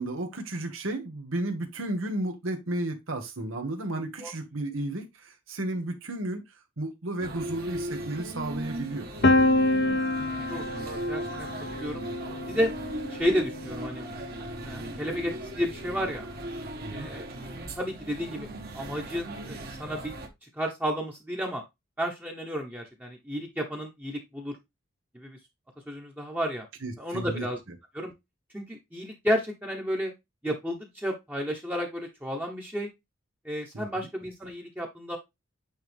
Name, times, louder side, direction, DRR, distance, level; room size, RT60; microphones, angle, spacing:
voice 1, 0.0-6.4 6.8-9.1 16.8-17.1 26.8-27.5 33.7-34.1, right 1 dB, 80° right, 1.5 m, -33 dB
sound 1, 7.2-20.3, right 1 dB, 50° right, 1.5 m, -38 dB
Piano, 9.2-15.0, left 2 dB, 55° left, 0.7 m, -28 dB
voice 2, 10.5-12.0 12.5-12.7 13.1-14.1 14.6-16.3 16.9-17.3 17.7-18.5 18.7-20.1 20.4-21.6 22.0-24.6 25.1-25.4 25.9-26.7 27.0-27.6 27.9-28.1 28.5-30.1 30.4-32.9 33.4-35.2, equal, 10° right, 1.0 m, -32 dB
8.7 x 3.3 x 3.5 m
head